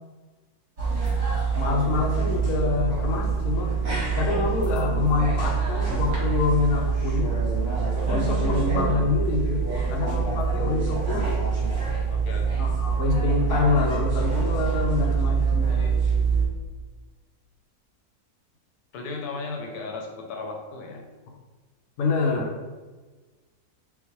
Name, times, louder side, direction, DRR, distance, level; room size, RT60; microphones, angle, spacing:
sound 1, 0.8-16.4, right 5 dB, 65° right, 1.9 m, -25 dB
voice 1, 1.5-3.8 4.1-7.4 8.0-11.4 12.6-15.7 22.0-22.6, left 4 dB, 70° left, 2 dB, 1.0 m, -26 dB
voice 2, 12.1-12.6 15.0-15.9 18.9-21.1, left 3 dB, 85° left, 1 dB, 1.2 m, -36 dB
3.8 x 3.7 x 3.0 m, 1.3 s
omnidirectional pair, 1.6 m